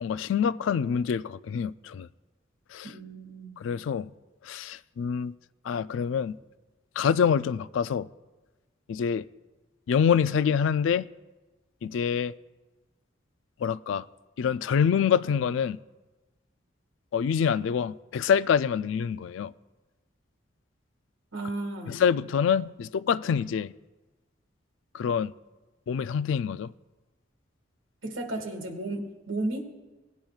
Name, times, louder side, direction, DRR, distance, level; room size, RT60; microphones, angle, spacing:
voice 1, 0.0-2.1 2.7-2.9 3.6-4.1 4.4-5.3 5.6-6.4 7.0-8.1 8.9-9.2 9.9-11.1 11.8-12.3 13.6-14.1 14.4-15.8 17.1-19.5 21.9-23.7 24.9-25.3 25.9-26.7, left 7 dB, 80° left, 0.3 m, -26 dB
voice 2, 2.8-3.6 21.3-22.0 28.0-29.8, right 2 dB, 90° right, 1.7 m, -34 dB
18.5 x 10.5 x 2.4 m
head